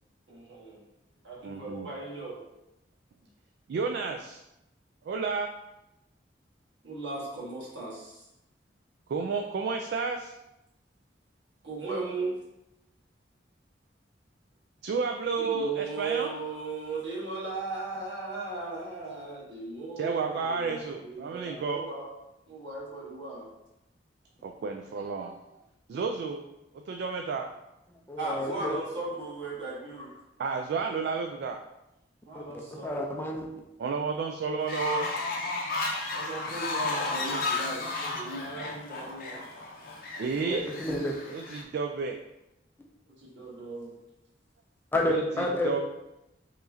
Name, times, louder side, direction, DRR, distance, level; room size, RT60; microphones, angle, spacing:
voice 1, 0.3-0.8 1.2-2.4 6.8-8.2 11.6-12.4 15.4-22.1 22.5-23.5 28.2-30.1 32.2-33.0 36.1-39.5 43.1-43.9, right 3 dB, 80° right, -5 dB, 1.4 m, -37 dB
voice 2, 1.4-1.9 3.7-4.4 5.0-5.5 9.1-10.3 14.8-16.3 20.0-21.8 24.4-25.4 25.9-26.4 26.9-27.5 30.4-31.6 33.8-35.1 40.2-40.6 41.3-42.2 45.0-45.8, right 4 dB, 60° right, 3 dB, 0.3 m, -31 dB
voice 3, 28.1-28.7 32.3-32.4 32.8-33.5 38.0-38.1 40.5-41.2 44.9-45.8, left 1 dB, 10° left, 0 dB, 0.5 m, -30 dB
Fowl, 34.6-41.6, left 3 dB, 55° left, 0.6 m, -33 dB
4.6 x 3.1 x 2.6 m, 0.90 s
head